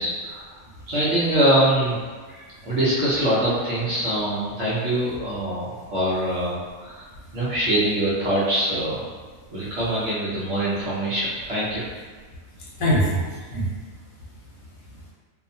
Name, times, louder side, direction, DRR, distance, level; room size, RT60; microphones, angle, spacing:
voice 1, 0.0-0.4 0.9-2.0 2.3-7.1 7.3-9.0 9.5-11.8, right 1 dB, 60° right, -9 dB, 0.9 m, -23 dB
voice 2, 12.6-14.0 14.9-15.1, equal, 75° left, -6 dB, 1.2 m, -26 dB
2.7 x 2.1 x 2.6 m, 1.5 s
omnidirectional pair, 1.4 m